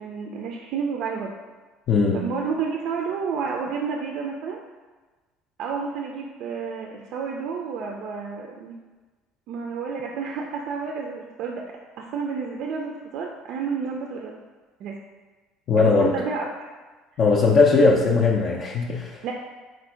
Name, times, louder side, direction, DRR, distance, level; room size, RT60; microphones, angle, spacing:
voice 1, 0.0-1.3 2.1-4.6 5.6-8.8 9.5-14.4 14.8-15.0 15.8-16.5 19.2-19.3, right 5 dB, 50° right, 0 dB, 0.4 m, -30 dB
voice 2, 1.9-2.3 15.7-16.2 17.2-19.2, left 4 dB, 40° left, -2 dB, 0.4 m, -19 dB
4.2 x 2.6 x 4.2 m, 1.3 s
cardioid pair, 170°, 0 cm